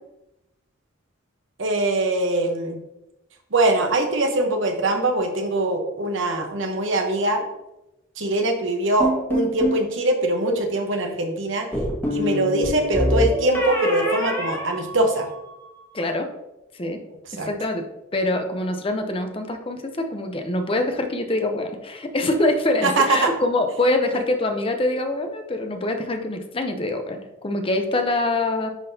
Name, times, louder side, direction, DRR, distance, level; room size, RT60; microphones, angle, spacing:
voice 1, 1.6-2.8 3.5-7.4 8.2-11.7 12.1-15.3 17.2-17.5 22.8-23.3 24.1-24.2, right 2 dB, 70° right, 4 dB, 1.0 m, -22 dB
sound 1, 9.0-9.8 11.7-15.5, equal, 10° left, 1.4 m, -25 dB
voice 2, 15.9-16.3 16.8-17.0 17.3-17.9 18.1-28.7, left 2 dB, 25° left, 5 dB, 0.7 m, -24 dB
10.5 x 3.9 x 2.8 m, 0.92 s
head